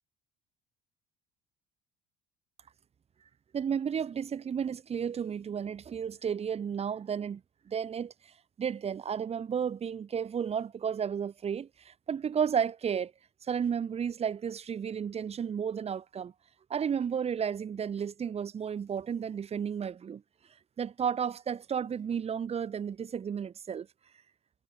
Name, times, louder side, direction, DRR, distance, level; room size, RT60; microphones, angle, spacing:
voice 1, 3.5-7.4 7.7-8.1 8.6-13.1 13.5-16.3 16.7-20.2 20.8-23.9, right 7 dB, 30° right, 7.2 m, -32 dB
cardioid pair, 145°, 20 cm